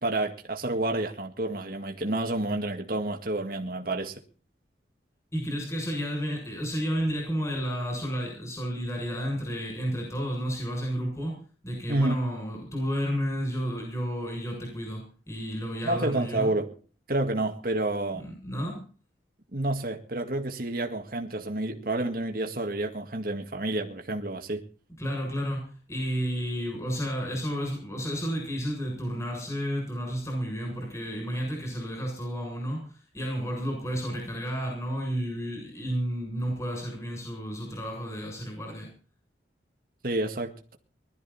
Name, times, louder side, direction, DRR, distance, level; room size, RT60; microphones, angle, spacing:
voice 1, 0.0-4.1 11.9-12.2 15.8-16.7 17.1-18.3 19.5-24.6 40.0-40.8, right 2 dB, 55° right, 2.1 m, -29 dB
voice 2, 5.3-11.3 11.6-16.5 18.1-18.8 25.0-38.9, equal, 15° left, 7.4 m, -31 dB
21.0 x 13.5 x 4.3 m
head